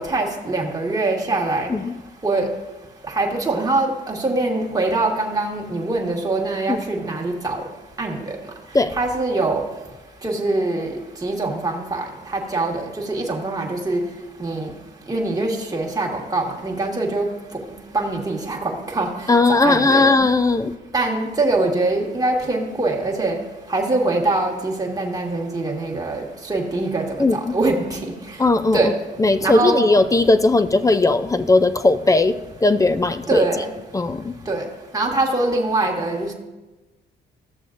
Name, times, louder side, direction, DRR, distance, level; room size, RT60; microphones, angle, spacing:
voice 1, 0.0-1.7 2.2-2.5 3.2-7.6 8.0-8.4 9.0-9.6 10.2-10.9 11.2-12.0 12.3-12.8 13.1-14.0 14.4-14.7 15.1-17.3 17.9-19.1 19.6-20.1 20.9-23.4 23.7-26.2 26.5-27.2 27.5-28.1 28.7-28.9 29.4-29.8 33.3-33.7 34.5-34.6 34.9-36.3, right 2 dB, 20° right, -1 dB, 1.5 m, -23 dB
voice 2, 19.3-20.7 27.2-27.5 28.4-28.9 29.2-33.6 33.9-34.3, left 2 dB, 15° left, 12 dB, 0.4 m, -18 dB
14.0 x 6.8 x 2.5 m, 1.1 s
cardioid pair, 90°, 20 cm